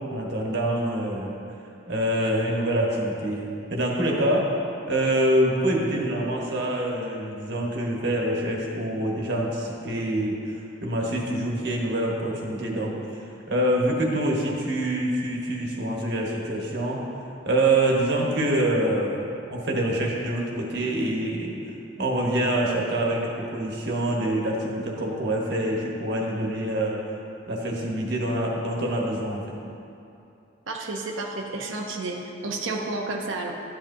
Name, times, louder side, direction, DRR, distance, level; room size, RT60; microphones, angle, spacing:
voice 1, 0.1-1.4 1.9-4.5 4.9-12.9 13.5-17.0 17.4-21.5 22.0-27.0 27.5-29.4, right 1 dB, 60° right, -2 dB, 1.2 m, -25 dB
voice 2, 30.7-33.5, right 2 dB, 80° right, 1 dB, 0.7 m, -31 dB
12.0 x 7.9 x 2.7 m, 2.7 s
head